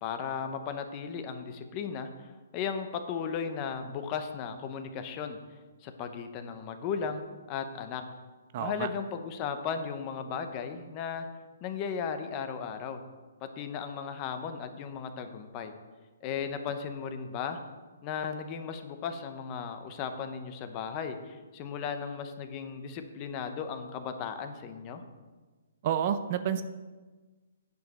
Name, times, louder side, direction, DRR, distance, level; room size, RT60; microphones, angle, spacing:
voice 1, 0.0-5.4 5.8-7.2 7.5-8.0 8.6-11.3 11.6-13.0 13.4-15.7 16.2-17.6 18.0-25.0, left 6 dB, 25° left, 8 dB, 0.7 m, -36 dB
voice 2, 8.5-8.9 25.8-26.6, right 9 dB, 35° right, 11 dB, 0.5 m, -29 dB
9.3 x 5.1 x 6.8 m, 1.3 s
hypercardioid pair, 165°, 0 cm